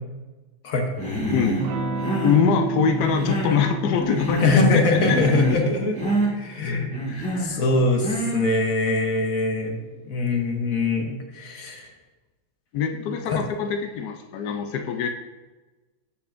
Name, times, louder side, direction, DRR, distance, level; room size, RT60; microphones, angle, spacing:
Human voice, 1.0-1.6 1.9-2.4 2.9-3.6 3.9-4.7 4.9-5.6 5.9-6.3 6.9-7.5 8.0-8.4, right 2 dB, 5° left, 1.4 m, -27 dB
voice 1, 1.3-1.7 2.2-5.2 7.1-7.6 12.7-15.1, left 7 dB, 80° left, 5 dB, 0.9 m, -24 dB
Electric guitar / Strum, 1.6-9.9, right 2 dB, 65° right, 1.2 m, -33 dB
voice 2, 4.4-6.0 6.3-7.0 7.4-9.8 10.0-11.9 13.3-13.4, left 3 dB, 50° left, 2 dB, 1.1 m, -23 dB
12.5 x 5.6 x 2.5 m, 1.2 s
omnidirectional pair, 2.4 m